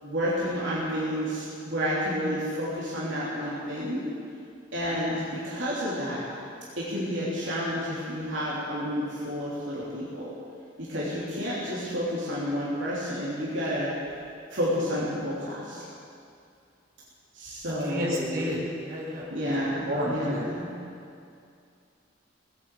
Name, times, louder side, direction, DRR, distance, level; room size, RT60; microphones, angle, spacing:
voice 1, 0.0-4.0 4.7-6.2 6.8-10.3 10.8-13.9 14.5-15.9 17.3-18.5 19.3-20.7, equal, 70° right, -8 dB, 3.3 m, -30 dB
voice 2, 17.8-19.2 19.9-20.5, equal, 50° right, -4 dB, 4.1 m, -31 dB
19.0 x 8.4 x 8.4 m, 2.4 s
head